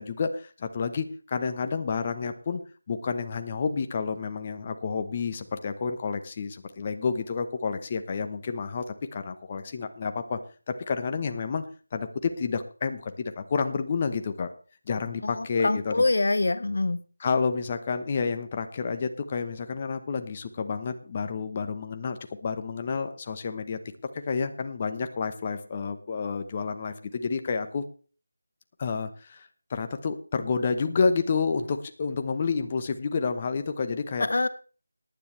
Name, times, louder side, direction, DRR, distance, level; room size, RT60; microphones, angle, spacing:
voice 1, 0.0-2.6 2.9-10.4 10.7-11.6 11.9-14.5 14.9-15.9 17.2-23.8 24.1-27.8 28.8-34.3, left 5 dB, 25° left, 8 dB, 0.9 m, -30 dB
voice 2, 15.2-17.0 34.2-34.5, left 2 dB, 65° left, 13 dB, 0.8 m, -25 dB
18.5 x 9.8 x 3.3 m, 0.39 s
figure-of-eight pair, 170°, 0 cm